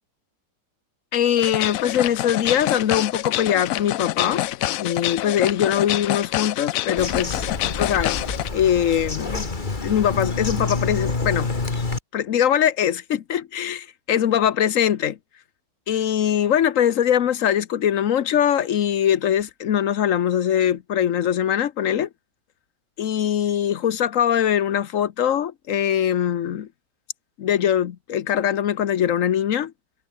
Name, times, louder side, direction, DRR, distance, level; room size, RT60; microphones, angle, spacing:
voice 1, 1.1-4.4 4.8-7.4 7.8-8.2 8.5-9.5 9.8-11.5 12.1-15.2 15.9-22.1 23.0-26.7 27.4-29.7, left 9 dB, 55° left, 1.0 m, -22 dB
sound 1, 1.4-8.5, left 15 dB, 85° left, 0.7 m, -27 dB
Bird vocalization bird call bird song, 7.0-12.0, left 3 dB, 25° left, 2.0 m, -27 dB
omnidirectional pair, 2.0 m